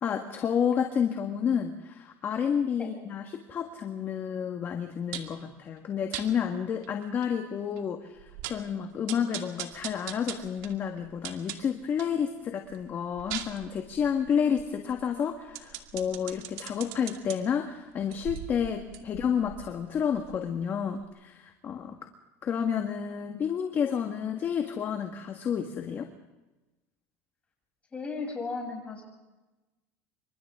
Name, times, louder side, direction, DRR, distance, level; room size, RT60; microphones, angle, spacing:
voice 1, 0.0-21.9 22.4-26.1, left 7 dB, 35° left, 4 dB, 1.7 m, -30 dB
sound 1, 5.1-5.4 6.1-6.3 6.8-6.9 7.2-7.3 7.8-7.9 8.2-8.7 9.1-12.2 12.6-17.4 18.0-20.7 21.0-21.1, right 12 dB, 70° right, 2.3 m, -41 dB
voice 2, 27.9-29.0, left 4 dB, 20° left, 0 dB, 7.8 m, -35 dB
28.0 x 25.5 x 3.8 m, 1.1 s
cardioid pair, 140°, 7 cm